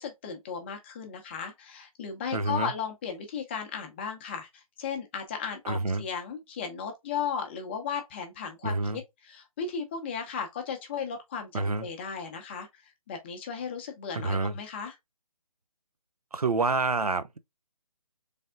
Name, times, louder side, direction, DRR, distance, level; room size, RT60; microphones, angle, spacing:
voice 1, 0.0-15.0, left 6 dB, 20° left, 0.7 m, -36 dB
voice 2, 2.3-2.7 5.6-6.0 8.6-9.0 11.5-11.9 14.2-14.5 16.3-17.4, right 3 dB, 85° right, 0.6 m, -28 dB
4.1 x 3.4 x 2.4 m
figure-of-eight pair, 150°, 19 cm